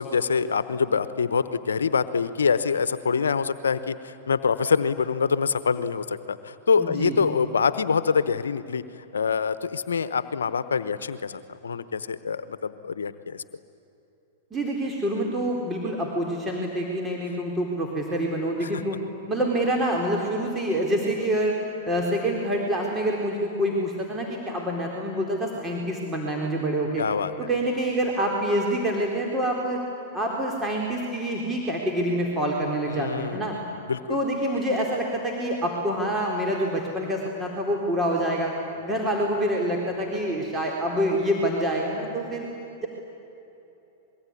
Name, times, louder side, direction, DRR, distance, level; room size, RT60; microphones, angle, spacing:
voice 1, 0.0-8.8 9.1-13.4 18.6-18.8 27.0-27.3 32.9-33.6 33.9-34.2, left 5 dB, 85° left, 13 dB, 0.9 m, -25 dB
voice 2, 6.8-7.2 14.5-19.0 19.3-27.0 27.4-29.8 30.1-33.6 34.1-38.5 38.8-42.5 42.8-42.9, right 1 dB, 15° right, -1 dB, 4.0 m, -26 dB
26.0 x 22.0 x 9.8 m, 2.9 s
hypercardioid pair, 110°, 0 cm